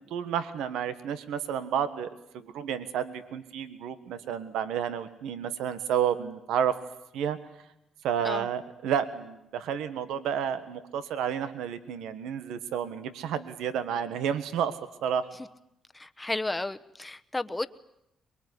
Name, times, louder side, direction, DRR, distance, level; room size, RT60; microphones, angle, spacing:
voice 1, 0.1-6.8 7.1-7.4 8.0-15.3, right 8 dB, 90° right, 1.4 m, -31 dB
voice 2, 15.9-17.7, left 2 dB, 15° left, 1.0 m, -32 dB
23.5 x 22.0 x 9.7 m
cardioid pair, 90°, 0 cm